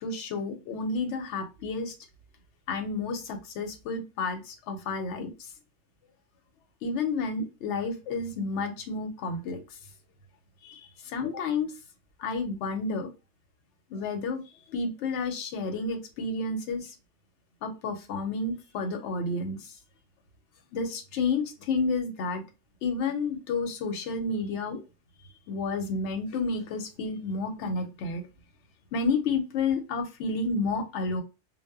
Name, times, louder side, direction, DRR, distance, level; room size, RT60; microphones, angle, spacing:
voice 1, 0.0-1.9 2.7-5.3 6.8-9.6 10.6-11.7 12.2-13.1 13.9-14.4 14.7-16.9 17.6-19.7 20.7-22.4 22.8-24.8 25.5-28.2 28.9-31.2, left 3 dB, 70° left, 4 dB, 0.9 m, -30 dB
2.1 x 2.0 x 3.3 m, 0.28 s
omnidirectional pair, 1.3 m